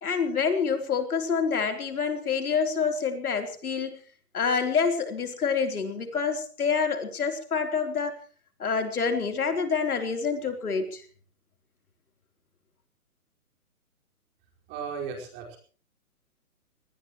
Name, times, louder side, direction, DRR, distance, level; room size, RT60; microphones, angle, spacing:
voice 1, 0.0-3.9 4.3-8.1 8.6-11.0, left 5 dB, 75° left, 6 dB, 3.9 m, -27 dB
voice 2, 14.7-15.6, right 6 dB, 25° right, 1 dB, 5.0 m, -35 dB
23.0 x 19.5 x 3.1 m, 0.42 s
hypercardioid pair, 150°, 45 cm